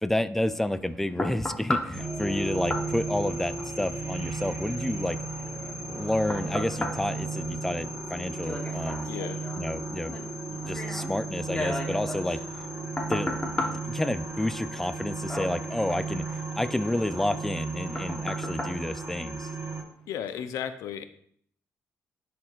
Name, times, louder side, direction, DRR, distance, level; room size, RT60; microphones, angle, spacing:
voice 1, 0.0-5.2 5.9-9.1 9.6-10.2 10.7-12.4 13.1-19.5, left 1 dB, 5° left, 13 dB, 0.4 m, -30 dB
sound 1, 0.5-19.8 20.3-20.4, left 2 dB, 20° left, 1.1 m, -37 dB
sound 2, 1.9-19.8, right 4 dB, 45° right, 1.1 m, -35 dB
sound 3, 2.0-10.4, right 2 dB, 20° right, 0.7 m, -41 dB
voice 2, 9.1-9.4 20.1-21.0, left 9 dB, 85° left, 11 dB, 0.5 m, -34 dB
10.0 x 4.3 x 2.5 m, 0.63 s
cardioid pair, 80°, 6 cm